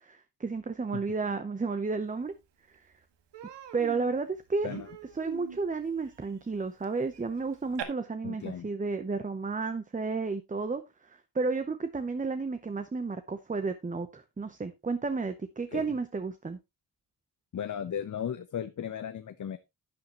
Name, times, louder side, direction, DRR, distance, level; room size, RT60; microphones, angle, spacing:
voice 1, 0.0-2.3 2.7-2.8 3.7-4.7 5.2-16.6, right 4 dB, 20° right, 0.7 m, -32 dB
Human voice, 2.3-2.4 2.7-2.9 3.3-7.8, right 9 dB, 80° right, 1.8 m, -44 dB
voice 2, 8.2-8.7 15.7-15.9 17.5-19.6, left 8 dB, 45° left, 0.7 m, -36 dB
11.5 x 8.5 x 2.9 m
wide cardioid pair, 125°, 42 cm